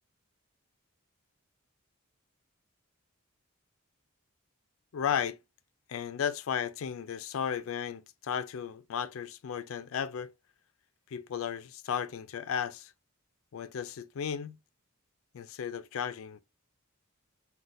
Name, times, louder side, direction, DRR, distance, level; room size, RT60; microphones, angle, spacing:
voice 1, 4.9-5.4 5.9-10.3 11.1-12.9 13.5-14.6 15.3-16.4, left 8 dB, 70° left, 0.4 m, -34 dB
3.9 x 2.2 x 2.5 m
head